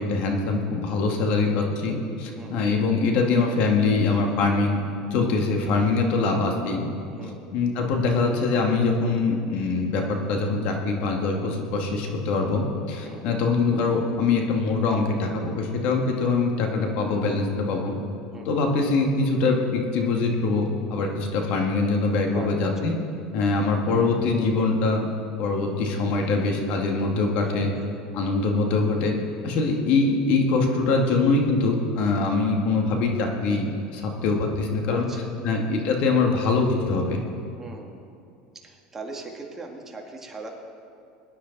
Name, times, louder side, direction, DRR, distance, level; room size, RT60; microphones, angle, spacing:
voice 1, 0.0-4.8 5.1-6.9 7.5-18.0 18.5-23.0 23.3-25.1 25.4-27.7 28.1-29.2 29.4-35.1 35.4-37.2, left 3 dB, 60° left, 2 dB, 2.1 m, -23 dB
voice 2, 22.3-22.7 23.2-23.4 27.4-27.9 34.9-35.4 37.6-38.0 38.6-40.5, right 3 dB, 15° right, 0 dB, 2.0 m, -40 dB
21.5 x 10.0 x 4.1 m, 2.5 s
supercardioid pair, 120°, 2 cm